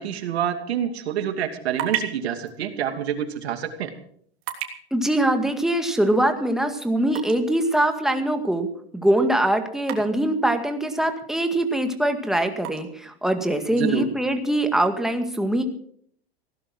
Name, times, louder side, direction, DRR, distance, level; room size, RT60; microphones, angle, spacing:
voice 1, 0.0-3.9 13.7-14.1, right 9 dB, 85° right, 7 dB, 2.6 m, -27 dB
sound 1, 1.3-15.1, right 10 dB, 45° right, 3.3 m, -40 dB
voice 2, 4.9-8.7 8.9-15.6, right 1 dB, ahead, 6 dB, 2.0 m, -23 dB
17.0 x 12.0 x 6.2 m, 0.63 s
supercardioid pair, 125°, 31 cm